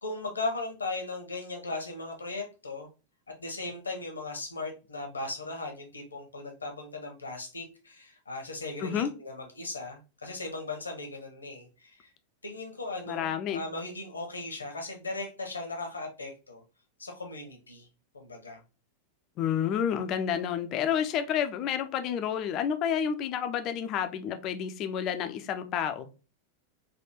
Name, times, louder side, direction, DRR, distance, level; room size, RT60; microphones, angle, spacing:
voice 1, 0.0-2.9 3.4-12.1 12.4-16.6 17.0-17.9 18.1-18.6, left 2 dB, 75° left, 3 dB, 0.7 m, -37 dB
voice 2, 8.8-9.1 13.1-13.6 19.4-26.1, left 8 dB, 35° left, 8 dB, 0.4 m, -30 dB
3.4 x 2.3 x 2.9 m, 0.32 s
figure-of-eight pair, 90°, 0 cm